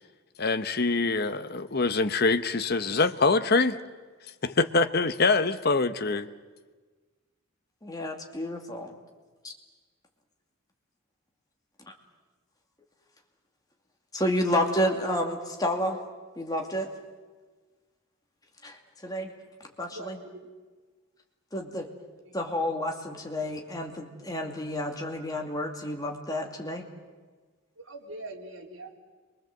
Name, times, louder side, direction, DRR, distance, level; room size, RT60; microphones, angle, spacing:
voice 1, 0.4-3.8 4.4-6.3, left 3 dB, 50° left, 1.0 m, -24 dB
voice 2, 7.8-8.9 9.4-9.5 11.9-12.0 14.1-16.0 16.4-16.9 18.6-19.3 19.8-20.2 21.5-21.9 22.3-26.8, left 1 dB, 20° left, 2.6 m, -30 dB
voice 3, 19.8-20.5 22.2-22.3 27.8-29.0, right 2 dB, 75° right, 4.0 m, -43 dB
28.5 x 23.5 x 7.8 m
head